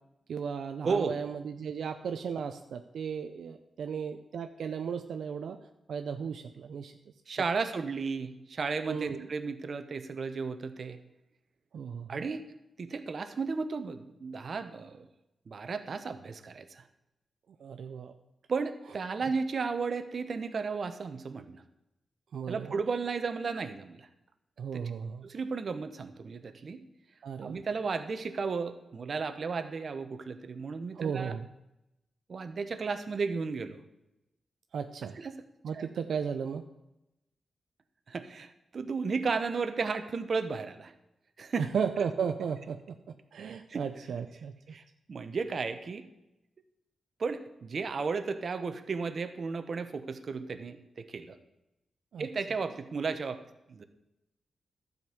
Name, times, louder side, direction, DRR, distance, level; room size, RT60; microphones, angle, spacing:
voice 1, 0.3-5.6 5.9-6.9 8.9-9.3 11.7-12.2 17.6-18.1 22.3-22.7 24.6-25.2 27.2-27.6 30.9-31.5 34.7-35.2 35.6-36.6 41.7-42.8 43.3-44.5 52.1-52.3, right 6 dB, 85° right, 7 dB, 0.5 m, -35 dB
voice 2, 0.8-1.2 7.3-11.0 12.1-12.4 12.8-15.1 15.5-16.8 18.5-21.6 22.5-24.1 24.7-24.8 25.2-26.8 27.4-31.4 32.3-33.8 35.2-35.4 35.7-35.9 38.1-40.9 41.4-41.7 43.7-43.8 44.7-44.8 45.1-46.1 47.2-51.4 52.2-53.4 53.7-53.8, right 4 dB, 55° right, 9 dB, 0.9 m, -34 dB
12.0 x 5.3 x 7.9 m, 0.91 s
cardioid pair, 90°, 0 cm